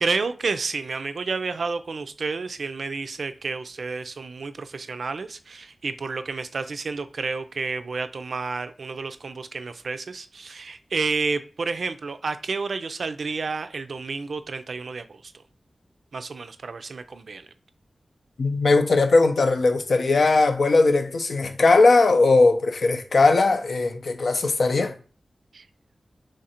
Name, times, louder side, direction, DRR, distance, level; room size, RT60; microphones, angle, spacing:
voice 1, 0.0-15.3 16.1-17.5 25.5-25.7, right 4 dB, 80° right, 0.3 m, -30 dB
voice 2, 18.4-24.9, left 3 dB, 75° left, 0.5 m, -19 dB
3.2 x 2.5 x 4.2 m
cardioid pair, 60°, 0 cm